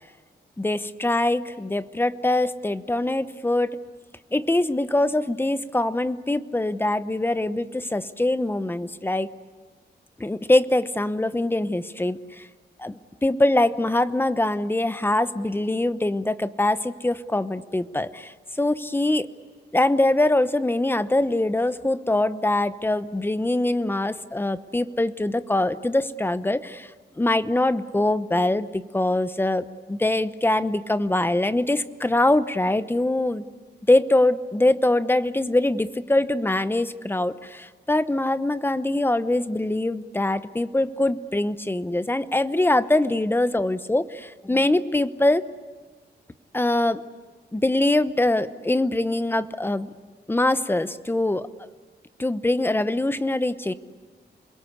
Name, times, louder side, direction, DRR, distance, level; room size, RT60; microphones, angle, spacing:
voice 1, 0.6-3.7 4.3-9.3 10.2-12.5 12.8-19.3 19.7-26.9 27.2-33.4 33.9-45.4 46.5-47.0 47.5-49.9 50.3-51.5 52.2-53.7, left 1 dB, 10° left, 13 dB, 0.9 m, -23 dB
28.0 x 22.0 x 8.3 m, 1.4 s
wide cardioid pair, 140°, 18 cm